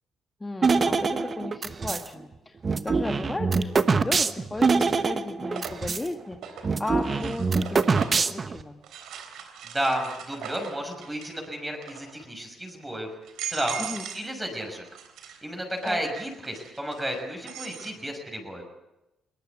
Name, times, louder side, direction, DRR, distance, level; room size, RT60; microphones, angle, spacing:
voice 1, 0.4-2.6 2.8-8.8 13.8-14.1 15.8-16.0, left 2 dB, 15° left, 4 dB, 1.6 m, -35 dB
sound 1, 0.6-2.1 2.6-6.1 6.3-6.4 6.6-8.6, right 4 dB, 35° right, 1.2 m, -24 dB
sound 2, 1.9-2.0 3.7-4.2 4.6-8.3 8.8-11.5 11.7-12.2 12.8-12.9 13.2-14.3 14.6-17.9, right 8 dB, 80° right, 3.6 m, -41 dB
voice 2, 9.6-13.1 13.5-14.8 15.4-18.6, right 1 dB, 15° right, 2 dB, 6.1 m, -32 dB
22.5 x 19.0 x 8.3 m, 0.94 s
cardioid pair, 90°, 0 cm